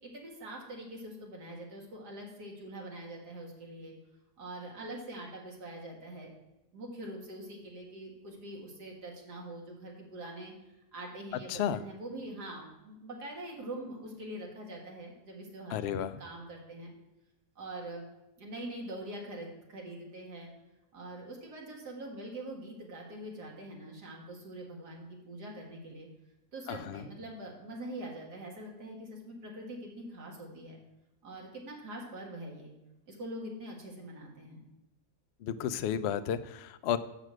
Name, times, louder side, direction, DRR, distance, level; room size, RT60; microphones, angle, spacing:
voice 1, 0.0-3.9 4.4-6.3 6.7-10.5 10.9-16.9 17.6-18.0 18.4-20.5 20.9-26.1 26.5-30.8 31.2-32.7 33.1-34.6, right 1 dB, 85° right, -1 dB, 2.5 m, -44 dB
voice 2, 11.5-11.8 15.7-16.2 26.7-27.0 35.4-37.0, left 9 dB, 85° left, 12 dB, 0.5 m, -32 dB
6.7 x 6.1 x 7.6 m, 0.94 s
omnidirectional pair, 1.7 m